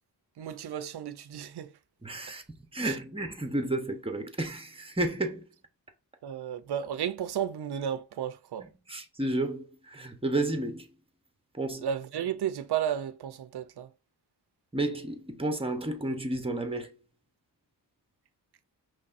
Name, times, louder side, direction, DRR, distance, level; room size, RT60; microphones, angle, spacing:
voice 1, 0.4-1.7 2.8-2.9 6.2-8.7 11.8-13.9, right 9 dB, 65° right, 0.6 m, -33 dB
voice 2, 2.0-5.5 8.6-10.9 11.5-11.9 14.7-17.0, right 2 dB, 15° right, 1.0 m, -32 dB
5.3 x 3.3 x 2.6 m
cardioid pair, 60°, 42 cm